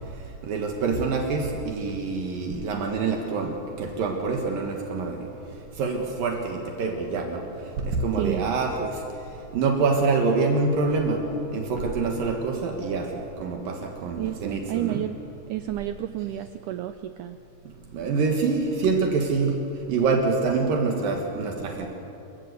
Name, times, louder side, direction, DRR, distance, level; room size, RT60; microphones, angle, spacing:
voice 1, 0.5-3.5 3.8-5.2 5.8-7.4 7.8-8.9 9.5-11.2 11.5-13.1 13.4-15.0 17.9-19.6 19.9-21.9, right 4 dB, 70° right, 2 dB, 3.1 m, -25 dB
voice 2, 8.1-8.5 14.2-15.2 15.5-17.4, right 13 dB, 90° right, 9 dB, 1.8 m, -30 dB
27.5 x 15.0 x 8.1 m, 2.9 s
omnidirectional pair, 4.3 m